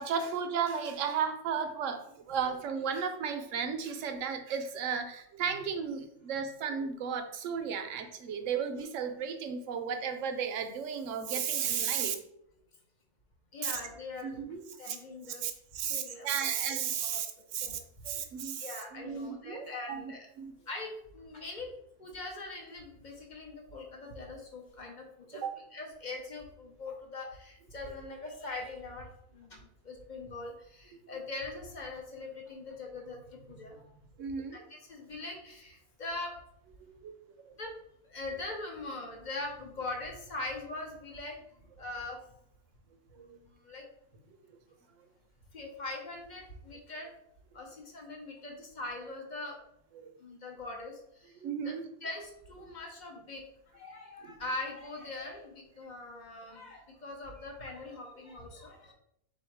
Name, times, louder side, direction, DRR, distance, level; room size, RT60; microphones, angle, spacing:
voice 1, 0.0-12.2 13.6-13.8 14.2-15.0 15.4-17.3 17.5-18.6 18.9-20.1 20.4-20.5 25.4-25.6 34.2-34.6 37.0-37.2 37.4-37.5 43.1-43.4 50.0-50.1 51.4-51.9 52.6-52.7 54.2-54.3, right 7 dB, 65° right, 7 dB, 0.9 m, -34 dB
voice 2, 13.5-14.4 14.8-15.5 15.8-16.5 17.0-17.2 17.6-17.8 18.6-20.3 20.7-21.7 22.0-25.4 25.7-33.9 34.5-36.3 37.6-37.7 38.0-41.4 41.8-42.2 43.2-43.9 45.5-47.1 47.5-49.6 50.2-51.7 52.0-58.9, left 2 dB, 45° left, 1 dB, 0.6 m, -42 dB
4.0 x 2.8 x 4.5 m, 0.75 s
omnidirectional pair, 1.6 m